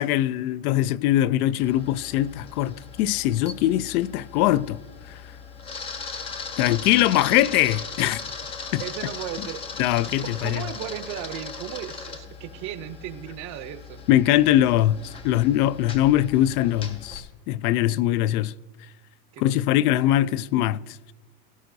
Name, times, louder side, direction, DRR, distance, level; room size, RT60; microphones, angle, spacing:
voice 1, 0.0-4.8 5.1-5.2 6.6-8.2 8.7-8.8 9.8-10.6 14.1-18.5 19.4-21.0, left 13 dB, 65° left, 0.5 m, -22 dB
Camera, 1.6-17.2, left 5 dB, 15° left, 0.4 m, -38 dB
voice 2, 8.8-9.7 10.2-14.0 19.3-19.8 20.3-20.4, right 11 dB, 35° right, 0.7 m, -36 dB
17.5 x 11.0 x 2.7 m
supercardioid pair, 140°, 48 cm